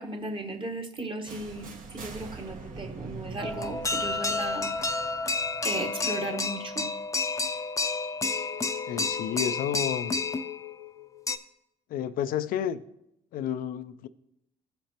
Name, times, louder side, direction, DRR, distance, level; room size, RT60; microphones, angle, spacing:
voice 1, 0.0-4.7 5.6-6.9, right 2 dB, 35° right, 1.3 m, -36 dB
sound 1, 1.3-7.1, right 4 dB, 65° right, 1.3 m, -44 dB
sound 2, 3.4-11.4, left 3 dB, 20° left, 0.6 m, -30 dB
voice 2, 8.9-10.2 11.9-12.8 13.3-14.1, left 9 dB, 70° left, 0.4 m, -31 dB
14.0 x 5.2 x 2.9 m
supercardioid pair, 65°, 15 cm